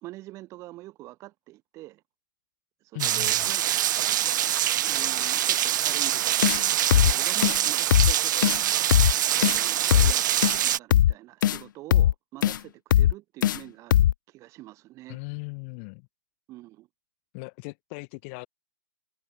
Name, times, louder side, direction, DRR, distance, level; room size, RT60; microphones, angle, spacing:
voice 1, 0.0-2.0 2.8-4.1 4.8-6.6 6.9-8.7 9.3-15.2 16.5-16.9, right 17 dB, 25° right, 3.0 m, -45 dB
voice 2, 2.9-3.3 15.1-16.1 17.3-18.5, left 33 dB, 30° left, 1.8 m, -38 dB
Rain, 3.0-10.8, right 12 dB, 50° right, 0.5 m, -25 dB
sound 1, 6.4-6.6 6.9-7.1 7.4-7.6 7.9-8.1 8.4-8.6 8.9-9.1 9.4-9.6 9.9-10.1 10.4-10.6 10.9-11.1 11.4-11.6 11.9-12.1 12.4-12.6 12.9-13.1 13.4-13.6 13.9-14.1, left 11 dB, 55° left, 0.7 m, -19 dB
hypercardioid pair, 145°, 13 cm